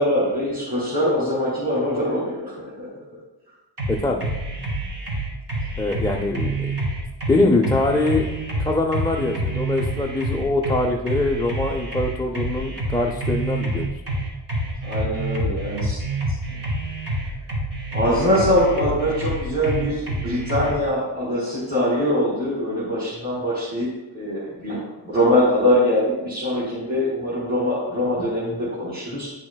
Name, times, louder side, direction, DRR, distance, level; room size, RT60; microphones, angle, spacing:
voice 1, 0.0-2.9 14.8-16.0 17.9-23.9 24.1-24.8 25.1-29.3, left 1 dB, 20° right, -7 dB, 1.9 m, -22 dB
sound 1, 3.8-20.7, right 1 dB, 60° right, 1.9 m, -27 dB
voice 2, 3.9-4.3 5.8-6.7 7.3-8.3 8.6-13.9, left 2 dB, 10° left, -2 dB, 0.3 m, -23 dB
9.5 x 6.2 x 2.2 m, 1.1 s
cardioid pair, 110°, 47 cm